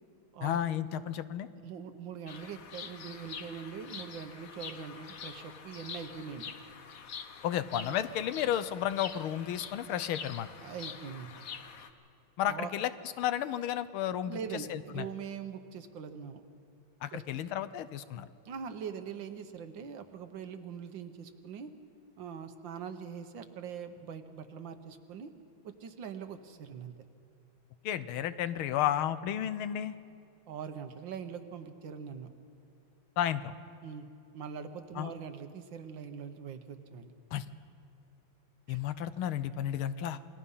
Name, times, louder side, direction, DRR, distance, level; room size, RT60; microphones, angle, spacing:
voice 1, 0.4-1.5 7.4-10.5 12.4-12.9 13.2-15.1 17.0-18.3 27.8-30.0 33.2-33.5 35.0-35.1 37.3-37.4 38.7-40.2, left 11 dB, 75° left, 13 dB, 1.5 m, -32 dB
voice 2, 1.6-6.5 10.6-11.3 12.4-12.7 14.3-16.4 17.1-17.2 18.5-21.7 22.2-25.3 25.6-26.9 30.5-32.3 33.8-34.1 34.3-37.1 38.7-38.8, right 7 dB, 65° right, 9 dB, 1.7 m, -42 dB
Bird vocalization bird call bird song, 2.3-11.9, left 6 dB, 50° left, 1.1 m, -45 dB
28.0 x 21.0 x 5.6 m, 2.5 s
omnidirectional pair, 2.4 m